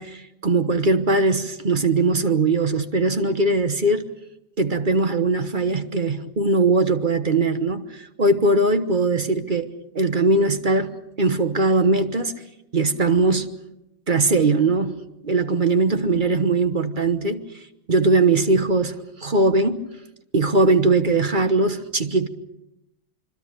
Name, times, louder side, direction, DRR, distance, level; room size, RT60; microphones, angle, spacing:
voice 1, 0.0-4.0 4.6-9.7 9.9-10.9 11.2-12.3 12.7-13.5 14.1-17.4 17.9-19.8 20.3-22.3, right 3 dB, 35° right, 1.1 m, -20 dB
25.5 x 24.5 x 6.7 m
omnidirectional pair, 1.9 m